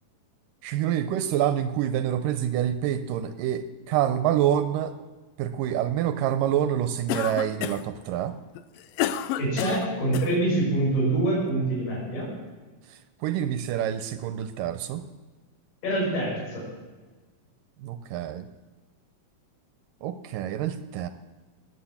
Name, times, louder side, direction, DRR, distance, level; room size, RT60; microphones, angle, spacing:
voice 1, 0.6-4.9 5.4-8.4 13.2-15.0 17.8-18.5 20.0-21.1, right 10 dB, 75° right, 11 dB, 2.1 m, -27 dB
Cough, 7.1-8.0 8.6-10.3, left 11 dB, 80° left, 2.3 m, -30 dB
voice 2, 9.4-12.3 15.8-16.6, right 2 dB, 60° left, -4 dB, 6.9 m, -25 dB
19.5 x 8.8 x 7.2 m, 1.3 s
omnidirectional pair, 4.4 m